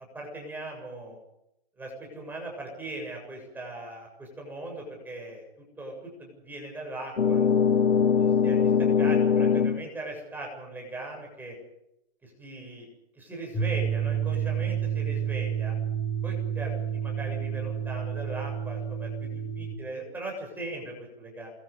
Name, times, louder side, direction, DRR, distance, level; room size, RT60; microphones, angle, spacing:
voice 1, 0.1-1.2 1.8-7.5 8.2-11.6 12.2-12.9 13.2-15.7 16.2-21.5, right 2 dB, 5° right, 0 dB, 7.3 m, -39 dB
sound 1, 7.2-9.9, left 6 dB, 85° left, 1.5 m, -22 dB
sound 2, 13.5-19.7, right 8 dB, 20° left, 5.7 m, -30 dB
28.5 x 22.0 x 5.4 m, 0.83 s
hypercardioid pair, 145°, 31 cm